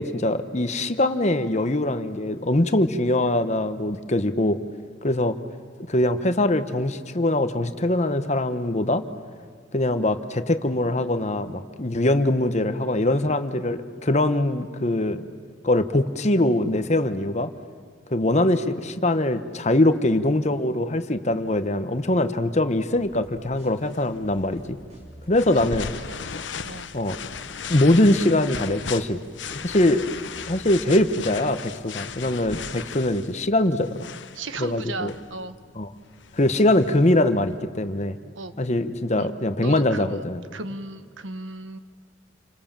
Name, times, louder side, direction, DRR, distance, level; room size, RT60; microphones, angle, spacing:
voice 1, 0.0-4.6 5.0-5.4 5.9-9.0 9.7-15.3 15.6-17.5 18.1-24.8 25.3-25.9 26.9-27.2 27.7-29.2 29.5-30.0 30.5-34.0 34.6-35.1 35.8-35.9 36.3-38.2 38.6-40.4, left 1 dB, 35° left, 10 dB, 1.1 m, -22 dB
sound 1, 22.9-32.9, equal, 35° right, 7.1 m, -49 dB
sound 2, 23.9-37.6, left 6 dB, 70° left, 0.9 m, -37 dB
voice 2, 34.3-35.6 38.3-38.5 39.2-40.2 40.5-41.8, right 2 dB, 85° right, 11 dB, 1.3 m, -36 dB
29.0 x 25.0 x 7.5 m, 2.1 s
head